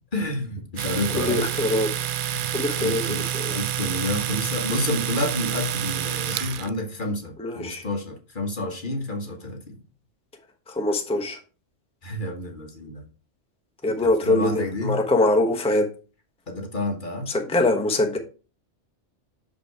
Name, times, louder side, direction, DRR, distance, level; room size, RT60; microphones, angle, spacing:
voice 1, 0.1-1.5 2.2-9.8 12.0-13.0 14.0-15.0 16.5-17.3, left 2 dB, 45° left, 3 dB, 1.5 m, -29 dB
Domestic sounds home sounds, 0.8-6.7, right 10 dB, 60° right, 0.6 m, -28 dB
voice 2, 1.1-1.9 2.5-3.6 7.4-7.8 10.7-11.4 13.8-15.9 17.3-18.2, left 2 dB, 5° left, 2 dB, 0.9 m, -23 dB
6.4 x 5.2 x 4.6 m, 0.35 s
omnidirectional pair, 1.2 m